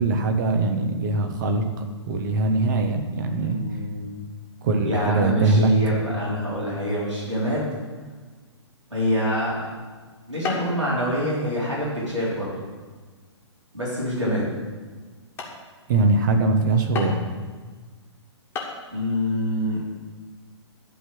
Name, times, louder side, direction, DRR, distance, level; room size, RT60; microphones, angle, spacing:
voice 1, 0.0-1.6 2.1-3.6 4.6-5.7 15.9-17.3, right 2 dB, 45° right, 5 dB, 1.3 m, -21 dB
voice 2, 3.4-4.0 4.8-7.8 8.9-9.6 10.3-12.5 13.7-14.5 18.9-19.8, equal, 85° right, -7 dB, 3.9 m, -26 dB
sound 1, 10.4-10.8 11.2-11.6 12.2-12.3 12.9-13.1 13.8-13.9 14.4-14.5 15.0-15.1 15.4-15.6 16.9-17.4 18.2-18.3 18.5-18.8, left 4 dB, 15° left, 1.7 m, -33 dB
11.5 x 4.7 x 7.7 m, 1.4 s
figure-of-eight pair, 120°, 15 cm